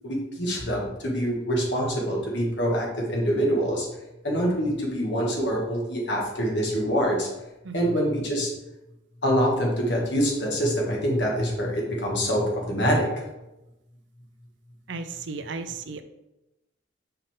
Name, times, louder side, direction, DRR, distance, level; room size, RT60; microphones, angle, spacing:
voice 1, 0.0-3.9 4.2-7.3 7.7-8.5 9.2-13.1, equal, 60° left, -2 dB, 1.8 m, -25 dB
voice 2, 14.9-16.0, right 4 dB, 65° right, 9 dB, 0.5 m, -35 dB
5.8 x 5.4 x 3.7 m, 0.96 s
head